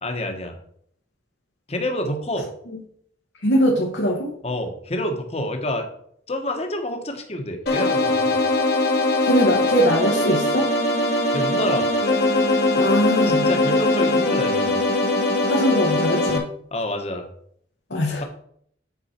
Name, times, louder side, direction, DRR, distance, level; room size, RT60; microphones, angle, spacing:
voice 1, 0.0-0.6 1.7-2.5 4.4-5.9 6.3-8.4 11.3-11.9 13.3-14.8 16.7-17.2, left 1 dB, 35° left, 4 dB, 1.1 m, -27 dB
voice 2, 3.4-4.3 9.2-10.7 12.8-13.4 15.4-16.5 17.9-18.2, equal, 85° left, -1 dB, 1.3 m, -21 dB
sound 1, 7.7-16.4, left 2 dB, 60° left, 1.2 m, -21 dB
8.3 x 5.4 x 4.4 m, 0.66 s
head